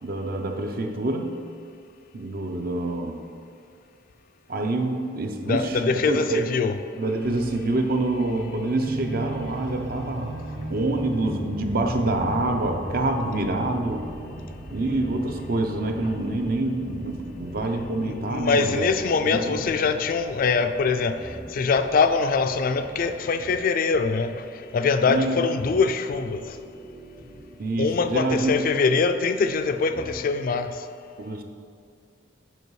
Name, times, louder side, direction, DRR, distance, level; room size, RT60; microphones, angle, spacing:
voice 1, 0.0-1.4 2.1-3.2 4.5-6.5 6.9-10.4 10.7-14.1 14.7-18.9 19.2-20.0 25.1-25.5 27.6-28.7 31.2-31.4, right 2 dB, 50° right, 5 dB, 0.6 m, -26 dB
voice 2, 5.5-6.8 18.1-24.4 24.7-26.4 27.8-30.8, left 4 dB, 50° left, 8 dB, 0.3 m, -23 dB
sound 1, 7.2-23.6, right 1 dB, 75° right, 1.4 m, -39 dB
sound 2, 13.0-30.5, right 1 dB, 5° right, 0.5 m, -46 dB
7.8 x 4.9 x 4.7 m, 2.3 s
head